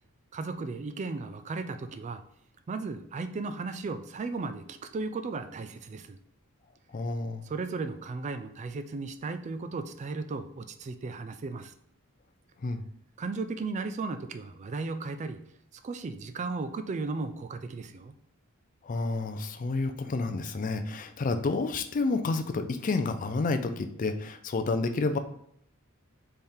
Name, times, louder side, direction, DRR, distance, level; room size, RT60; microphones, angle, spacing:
voice 1, 0.3-2.2 2.7-6.2 7.4-11.7 13.2-15.4 15.7-18.1, right 3 dB, 35° right, 10 dB, 0.3 m, -35 dB
voice 2, 6.9-7.4 12.6-12.8 18.8-25.2, left 3 dB, 40° left, 9 dB, 0.4 m, -30 dB
3.6 x 3.4 x 4.3 m, 0.71 s
head